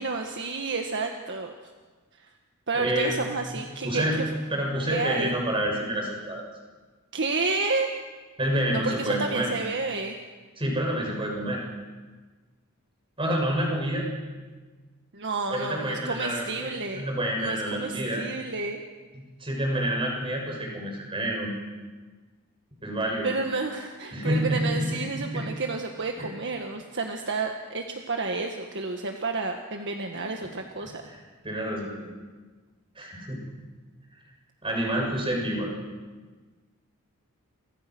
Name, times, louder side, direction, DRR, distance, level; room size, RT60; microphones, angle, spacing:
voice 1, 0.0-1.5 2.2-2.3 2.7-4.2 4.9-5.3 7.1-7.9 8.7-10.2 15.1-17.1 17.4-18.8 23.2-31.0, right 3 dB, 55° right, 3 dB, 1.8 m, -30 dB
voice 2, 2.7-3.1 3.8-4.2 4.5-6.4 8.4-9.5 10.6-11.6 13.2-14.1 15.5-18.2 19.1-21.5 22.8-23.3 24.1-25.5 26.2-26.3 31.1-31.2 31.4-32.1 33.0-33.4 34.6-35.7, right 1 dB, 25° right, 0 dB, 7.1 m, -28 dB
30.0 x 24.5 x 6.3 m, 1.4 s
head